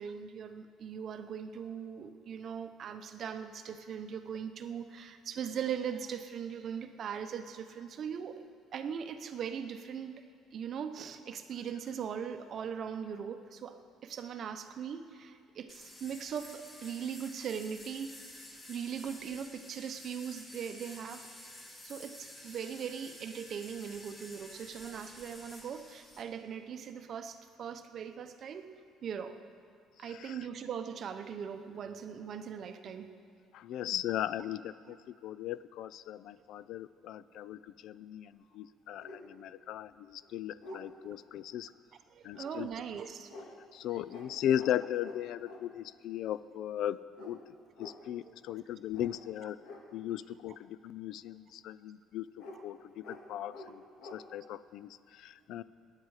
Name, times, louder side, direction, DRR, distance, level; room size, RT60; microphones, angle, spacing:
voice 1, 0.0-8.4 8.7-10.2 10.5-21.2 21.8-28.7 29.0-29.4 30.0-33.1 37.3-37.5 42.1-43.3 43.9-44.0 48.3-48.4, right 7 dB, 40° right, 9 dB, 0.7 m, -40 dB
sound 1, 15.7-26.2, left 1 dB, 20° left, 1.7 m, -51 dB
voice 2, 30.1-30.4 33.5-41.7 42.2-42.7 43.7-47.4 47.8-49.6 49.9-53.8 54.1-55.6, left 11 dB, 65° left, 17 dB, 0.3 m, -37 dB
sound 2, 38.3-38.4 38.9-39.2 39.8-39.9 40.2-40.8 42.3-42.5 43.3-43.5 44.1-44.3 44.5-44.7 45.0-45.6 47.1-47.4 47.7-48.0 48.9-49.1 49.6-49.8 52.4-52.6 53.0-53.2 53.5-53.7 54.0-54.2, left 2 dB, 85° left, 1.9 m, -48 dB
19.5 x 9.5 x 4.8 m, 2.4 s
cardioid pair, 160°, 0 cm